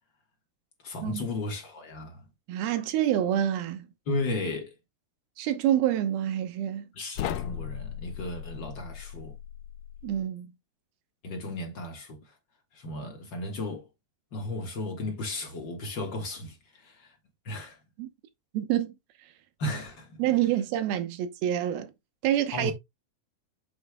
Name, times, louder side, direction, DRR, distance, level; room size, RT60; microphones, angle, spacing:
voice 1, 0.8-2.2 4.1-4.7 6.9-9.3 11.2-12.3 12.7-13.9 14.3-17.1 17.4-17.8 19.6-20.2 22.5-22.7, left 2 dB, 50° left, 1.4 m, -35 dB
voice 2, 2.5-3.9 5.4-6.8 10.0-10.5 18.0-18.1 18.5-18.9 20.2-21.9 22.2-22.7, right 11 dB, 80° right, 2.9 m, -27 dB
sound 1, 7.2-10.2, left 11 dB, 80° left, 1.9 m, -37 dB
7.7 x 7.5 x 2.2 m
omnidirectional pair, 4.4 m